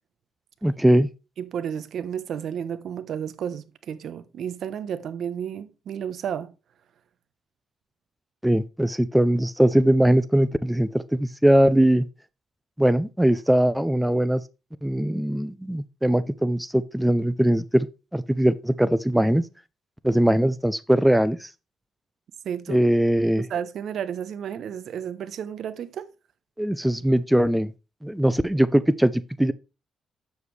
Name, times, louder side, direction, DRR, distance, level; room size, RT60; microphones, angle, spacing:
voice 1, 0.6-1.1 8.4-12.0 12.8-14.4 14.8-17.9 18.1-19.4 20.0-21.5 22.7-23.5 26.6-27.7 28.0-29.5, right 1 dB, 5° right, 0.5 m, -21 dB
voice 2, 1.4-6.5 22.4-22.8 23.4-26.1, right 8 dB, 65° right, 0.9 m, -32 dB
8.2 x 7.3 x 3.2 m
cardioid pair, 90°, 0 cm